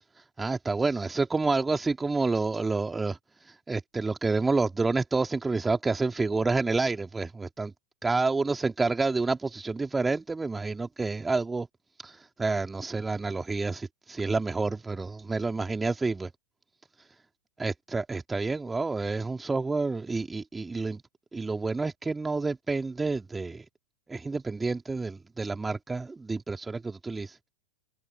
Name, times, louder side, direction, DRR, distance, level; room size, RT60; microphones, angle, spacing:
voice 1, 0.4-7.7 8.0-11.7 12.0-16.3 17.0-17.1 17.6-21.0 21.3-23.6 24.1-27.4, right 3 dB, 10° right, 2.5 m, -29 dB
figure-of-eight pair, 90°, 0 cm